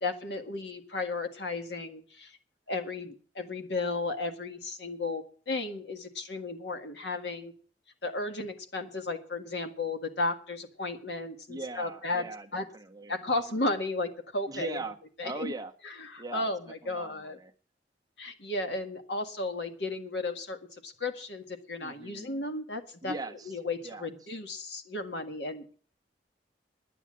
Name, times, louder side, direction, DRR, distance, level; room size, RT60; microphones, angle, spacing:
voice 1, 0.0-2.4 2.7-7.5 8.0-12.2 12.5-12.7 13.1-14.8 15.2-15.5 15.8-17.4 18.2-23.2 23.5-25.7, left 2 dB, 70° left, 6 dB, 1.8 m, -34 dB
voice 2, 11.5-13.1 13.5-13.6 14.5-15.0 15.2-15.7 16.2-16.5 16.8-17.5 21.8-22.4 23.0-23.5 23.8-24.1, right 3 dB, 20° right, 5 dB, 1.1 m, -40 dB
10.5 x 9.9 x 7.4 m, 0.43 s
head